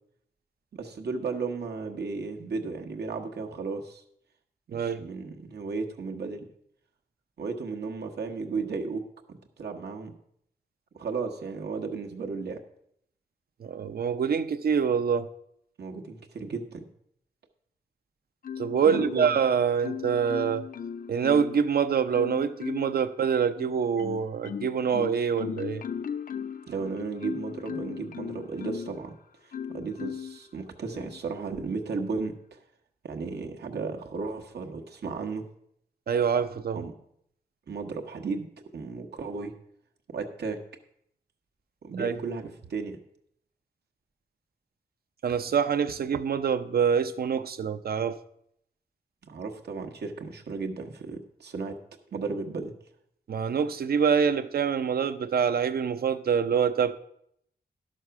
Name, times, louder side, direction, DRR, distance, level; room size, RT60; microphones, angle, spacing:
voice 1, 0.7-4.0 4.7-6.5 7.4-10.1 10.9-12.6 15.8-16.9 18.8-19.4 26.7-29.2 29.7-32.6 33.0-35.4 36.7-36.9 37.7-38.5 38.7-39.5 40.1-40.6 41.8-43.0 49.3-51.8 52.1-52.7, right 4 dB, 80° right, 2 dB, 1.1 m, -34 dB
voice 2, 4.7-5.0 13.6-15.3 18.6-20.7 21.1-25.8 36.1-36.8 42.0-42.1 45.2-48.2 53.3-56.9, right 7 dB, 65° right, 10 dB, 0.6 m, -25 dB
Marimba xylophone, 18.4-19.4 19.8-21.7 22.1-23.0 23.6-29.0 29.5-30.4 30.9-31.2, left 7 dB, 55° left, 0.4 m, -37 dB
11.0 x 6.4 x 5.7 m, 0.71 s
wide cardioid pair, 140°, 17 cm